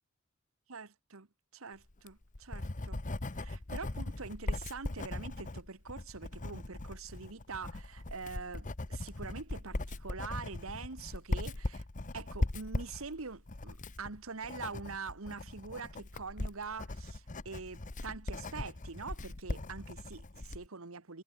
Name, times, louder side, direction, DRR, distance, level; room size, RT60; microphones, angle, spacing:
voice 1, 0.7-1.3 1.5-3.0 3.3-11.8 12.1-21.2, right 4 dB, 75° right, 1.4 m, -44 dB
Writing, 1.9-20.7, left 2 dB, 40° left, 1.1 m, -39 dB
head